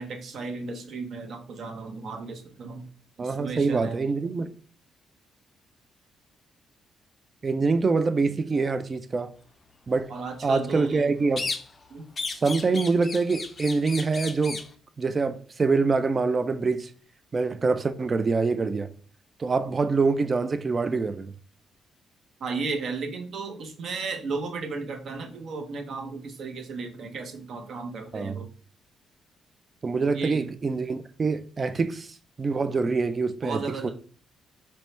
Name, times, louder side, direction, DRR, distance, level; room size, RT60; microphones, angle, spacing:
voice 1, 0.0-2.9 3.2-4.0 10.1-11.1 11.9-12.0 22.4-28.5 30.0-30.5 33.4-33.9, right 4 dB, 60° right, 0.8 m, -34 dB
voice 2, 3.2-4.5 7.4-9.3 9.9-10.1 10.4-11.4 12.4-14.6 15.0-16.9 17.3-18.9 19.4-21.3 28.1-28.4 29.8-33.9, right 4 dB, 35° right, 0.3 m, -25 dB
sound 1, 11.4-11.9 12.2-14.7, left 4 dB, 35° left, 0.4 m, -34 dB
4.3 x 2.2 x 3.2 m
cardioid pair, 90°, 0 cm